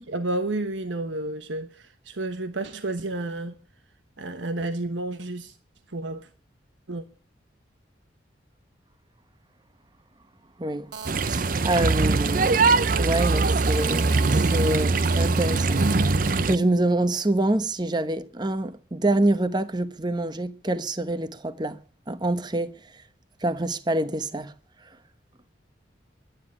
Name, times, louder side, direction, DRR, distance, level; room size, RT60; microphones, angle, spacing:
voice 1, 0.1-3.5 4.2-5.6 5.9-6.3 6.9-7.0, right 2 dB, 85° right, 1.2 m, -31 dB
voice 2, 10.6-10.9 11.2-16.1 16.5-21.8 22.1-22.7 23.4-24.5, right 1 dB, 25° right, 1.0 m, -26 dB
Telephone, 10.9-16.3, right 6 dB, 65° right, 1.1 m, -38 dB
sound 1, 11.1-16.6, right 3 dB, 45° right, 0.6 m, -22 dB
11.5 x 10.0 x 9.9 m
head